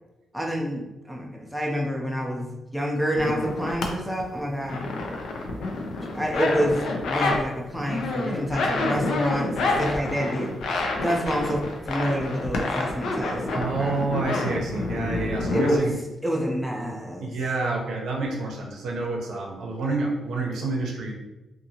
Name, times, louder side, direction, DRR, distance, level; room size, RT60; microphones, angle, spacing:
voice 1, 0.3-4.9 6.1-14.1 15.5-15.9 16.2-17.3, equal, ahead, -1 dB, 0.4 m, -28 dB
sound 1, 3.2-3.9 4.2-7.4 7.7-15.8, left 3 dB, 80° left, 0.5 m, -28 dB
voice 2, 13.5-16.0 17.2-21.1, right 3 dB, 85° right, -1 dB, 0.6 m, -28 dB
2.7 x 2.5 x 2.8 m, 1.0 s
cardioid pair, 120°, 0 cm